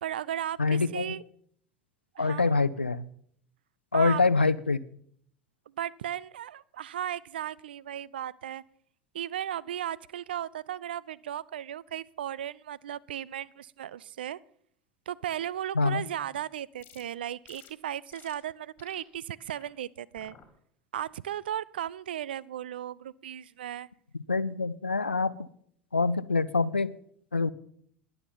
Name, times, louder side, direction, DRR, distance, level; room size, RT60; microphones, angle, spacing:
voice 1, 0.0-1.2 2.2-2.5 3.9-4.2 5.8-8.6 9.1-14.4 15.1-20.4 20.9-23.9, right 11 dB, 70° right, 21 dB, 0.4 m, -36 dB
voice 2, 0.6-1.1 2.2-3.1 3.9-4.8 15.8-16.0 24.3-25.3 25.9-26.9 27.3-27.5, left 4 dB, 85° left, 17 dB, 0.5 m, -25 dB
sound 1, 16.8-17.0 17.5-17.7 18.1-18.4 18.8-19.0 19.4-19.7 20.2-20.5 21.0-21.3, left 9 dB, 35° left, 2.2 m, -55 dB
21.0 x 7.2 x 5.3 m, 0.64 s
figure-of-eight pair, 75°, 6 cm